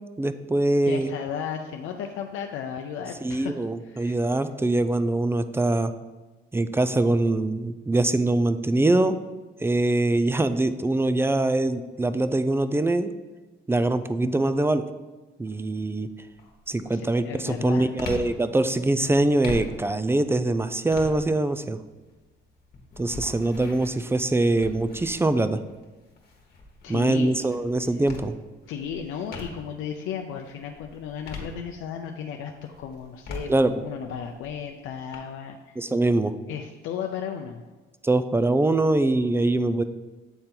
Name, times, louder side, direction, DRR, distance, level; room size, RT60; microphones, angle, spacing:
voice 1, 0.2-1.1 3.2-5.9 6.5-9.2 9.6-13.1 13.7-14.8 15.4-16.1 16.7-21.8 23.0-25.6 26.9-28.4 33.5-33.7 35.8-36.3 38.0-39.8, right 2 dB, 10° right, 11 dB, 0.3 m, -23 dB
voice 2, 0.9-3.5 3.9-4.2 16.9-17.9 26.8-27.5 28.7-35.8 36.5-37.6, left 7 dB, 85° left, 3 dB, 0.5 m, -34 dB
sound 1, 15.4-15.8 16.3-29.9 30.3-32.1 32.6-35.2, left 2 dB, 55° left, 1.3 m, -42 dB
7.9 x 3.7 x 4.4 m, 1.2 s
cardioid pair, 90°, 20 cm